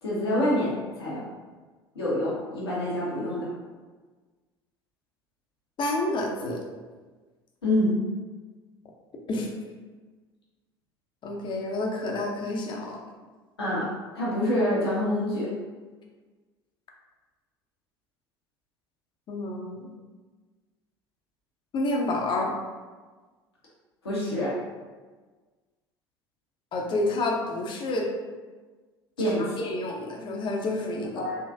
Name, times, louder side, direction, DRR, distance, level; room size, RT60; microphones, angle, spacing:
voice 1, 0.0-1.2 1.9-3.5 7.6-7.9 13.6-13.9 14.1-15.5 24.0-24.5 29.2-29.6 31.2-31.4, left 1 dB, 80° left, -7 dB, 1.1 m, -26 dB
voice 2, 5.8-6.6 9.3-9.5 11.2-13.0 19.3-19.9 21.7-22.5 26.7-28.1 29.3-31.4, left 2 dB, 35° left, 0 dB, 0.8 m, -29 dB
4.0 x 3.0 x 2.6 m, 1.4 s
figure-of-eight pair, 65°, 13 cm